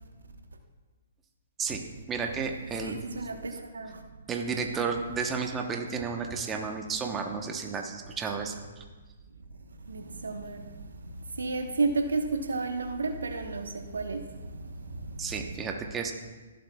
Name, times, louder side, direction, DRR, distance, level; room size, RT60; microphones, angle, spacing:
voice 1, 2.1-3.1 4.3-8.6 15.2-16.1, right 5 dB, 15° right, 3 dB, 0.9 m, -32 dB
voice 2, 2.8-4.0 9.9-10.8 11.3-15.3, right 3 dB, 85° right, 5 dB, 1.1 m, -32 dB
22.5 x 7.7 x 2.3 m, 1.3 s
hypercardioid pair, 140°, 0 cm